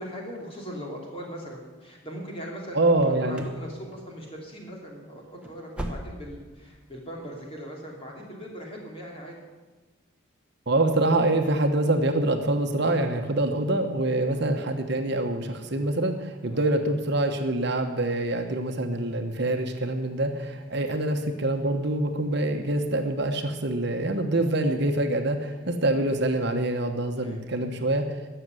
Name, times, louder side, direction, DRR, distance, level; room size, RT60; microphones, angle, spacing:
voice 1, 0.0-9.4 14.2-14.5 16.5-16.7 18.2-18.4 20.4-21.3 25.5-25.8 27.2-27.4, equal, 25° left, -1 dB, 3.0 m, -40 dB
voice 2, 2.7-3.4 10.7-28.1, right 2 dB, 55° right, 5 dB, 1.1 m, -25 dB
sound 1, 2.9-3.7 3.9-4.4 4.7-4.8 5.2-6.5 6.8-6.9 7.4-7.5, right 1 dB, 5° right, 1.0 m, -38 dB
14.0 x 6.7 x 9.6 m, 1.2 s
head